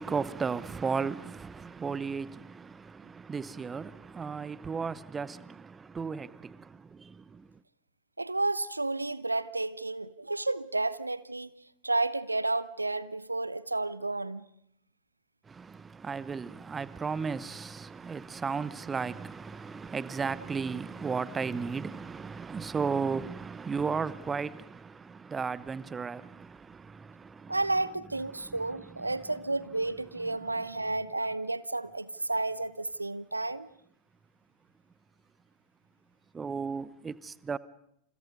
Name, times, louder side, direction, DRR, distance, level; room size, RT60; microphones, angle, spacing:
voice 1, 0.0-7.5 15.5-27.6 28.3-28.6 36.3-37.6, right 5 dB, 15° right, 0.9 m, -35 dB
voice 2, 8.2-11.5 11.8-14.5 27.5-33.7, right 2 dB, 85° right, 0.9 m, -31 dB
29.5 x 28.0 x 5.4 m
figure-of-eight pair, 90°, 0 cm